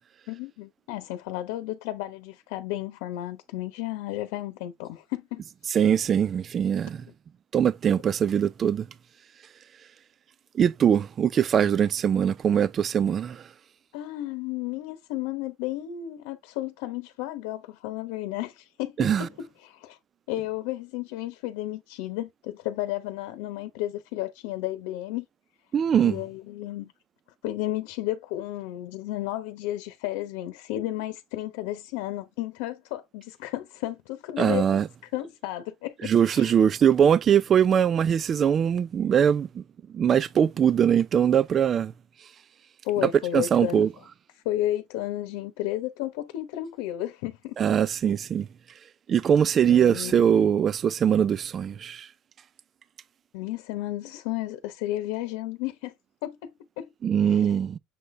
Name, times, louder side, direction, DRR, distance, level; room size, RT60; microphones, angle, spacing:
voice 1, 0.3-5.4 13.9-20.0 20.3-25.2 26.0-26.9 27.4-36.5 42.8-43.8 44.4-47.5 49.6-50.2 53.3-55.9 56.2-56.9 57.2-57.5, left 14 dB, 75° left, 1.0 m, -33 dB
voice 2, 5.7-7.0 7.5-8.9 10.5-13.4 19.0-19.3 25.7-26.2 34.4-34.9 36.0-39.6 39.9-41.9 43.0-43.9 47.6-48.5 49.1-52.1 57.0-57.8, right 8 dB, 30° right, 0.4 m, -22 dB
7.1 x 4.1 x 3.2 m
cardioid pair, 155°, 0 cm